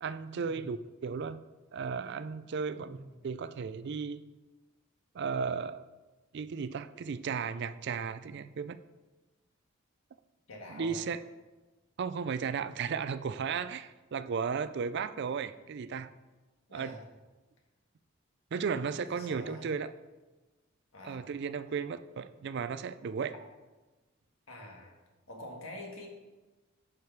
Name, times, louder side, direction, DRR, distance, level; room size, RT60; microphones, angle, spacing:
voice 1, 0.0-0.8 1.0-1.4 1.7-3.0 3.2-4.2 5.1-5.9 6.3-8.8 10.7-11.2 12.0-16.1 16.7-16.9 18.5-19.9 21.0-23.3, right 6 dB, 55° right, 13 dB, 0.4 m, -35 dB
voice 2, 2.7-3.2 10.5-11.1 16.7-17.0 19.1-19.7 20.9-21.4 24.5-25.0 25.3-26.1, left 1 dB, 85° left, 1 dB, 1.7 m, -46 dB
10.5 x 4.9 x 4.6 m, 1.2 s
head